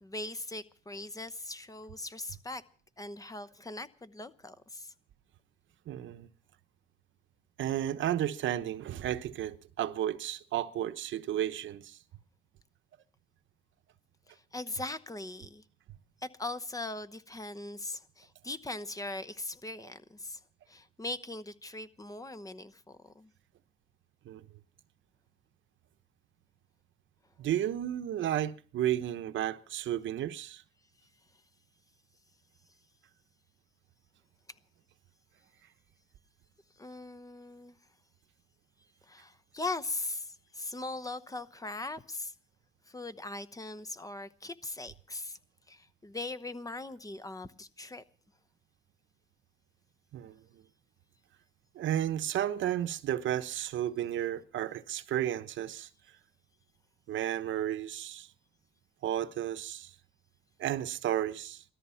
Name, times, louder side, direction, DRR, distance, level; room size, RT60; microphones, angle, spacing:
voice 1, 0.0-2.6 3.0-4.9 14.3-15.6 16.2-20.4 20.7-23.3 36.8-37.8 39.1-42.3 42.9-45.4 45.7-48.0, left 2 dB, 15° left, 0.9 m, -40 dB
voice 2, 5.9-6.3 7.6-12.0 24.2-24.4 27.4-30.6 50.1-50.3 51.7-55.9 57.1-58.3 59.0-59.9 60.6-61.6, right 11 dB, 75° right, 1.0 m, -33 dB
17.5 x 13.5 x 5.7 m
cardioid pair, 90°, 20 cm